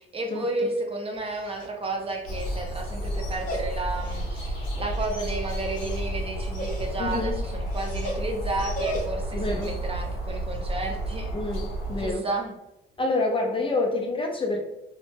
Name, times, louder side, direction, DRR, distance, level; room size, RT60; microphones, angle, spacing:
voice 1, 0.0-11.3 12.0-12.6, right 2 dB, 30° right, 2 dB, 0.5 m, -32 dB
Dog, 1.2-9.4, equal, 45° left, 0.8 m, -39 dB
sound 1, 2.3-12.1, right 1 dB, 75° left, 0.8 m, -31 dB
voice 2, 7.0-7.4 9.3-9.7 11.3-12.3 13.0-14.6, left 2 dB, 25° left, 1 dB, 0.4 m, -27 dB
2.1 x 2.0 x 3.1 m, 0.91 s
cardioid pair, 90°, 20 cm